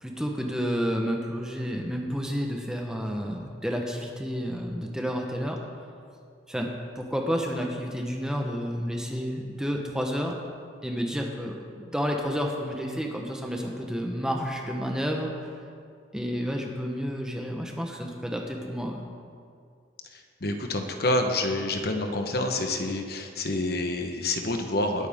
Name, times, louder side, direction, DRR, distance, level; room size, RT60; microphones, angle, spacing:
voice 1, 0.0-5.6 6.5-10.4 10.8-15.6 16.1-19.1, equal, 5° right, 1 dB, 1.1 m, -30 dB
voice 2, 20.1-25.1, left 2 dB, 60° left, 4 dB, 1.2 m, -28 dB
20.5 x 9.2 x 3.7 m, 2.2 s
head